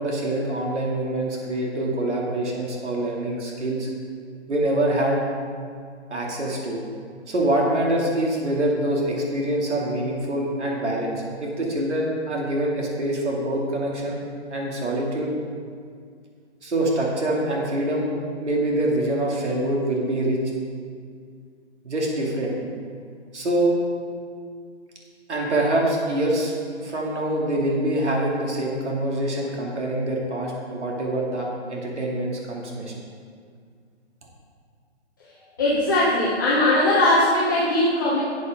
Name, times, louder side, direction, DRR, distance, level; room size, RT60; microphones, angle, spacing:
voice 1, 0.0-3.9 4.5-5.2 6.1-6.8 7.3-14.2 14.5-15.3 16.6-18.1 18.4-20.4 21.8-22.5 23.3-23.7 25.3-26.5 26.8-32.9, right 1 dB, 80° right, -2 dB, 2.6 m, -25 dB
voice 2, 35.6-38.2, left 1 dB, 20° left, -10 dB, 0.9 m, -20 dB
12.0 x 8.1 x 3.7 m, 2.1 s
hypercardioid pair, 175°, 34 cm